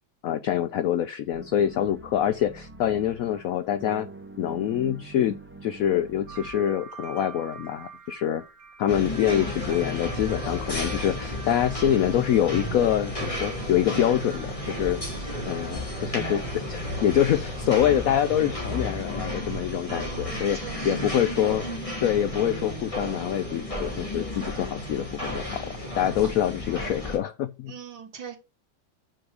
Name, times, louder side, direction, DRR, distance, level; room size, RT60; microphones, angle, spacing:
voice 1, 0.2-4.1 4.4-5.4 5.6-8.4 8.8-20.6 20.8-21.6 22.0-27.7, left 10 dB, 80° left, 0.7 m, -25 dB
sound 1, 1.3-6.5, right 3 dB, 10° right, 0.7 m, -44 dB
sound 2, 6.3-15.7, right 5 dB, 70° right, 2.4 m, -46 dB
sound 3, 8.9-27.2, left 1 dB, 15° left, 2.5 m, -33 dB
voice 2, 19.9-21.0 27.7-28.4, right 8 dB, 90° right, 2.2 m, -41 dB
6.1 x 4.7 x 6.4 m
omnidirectional pair, 2.0 m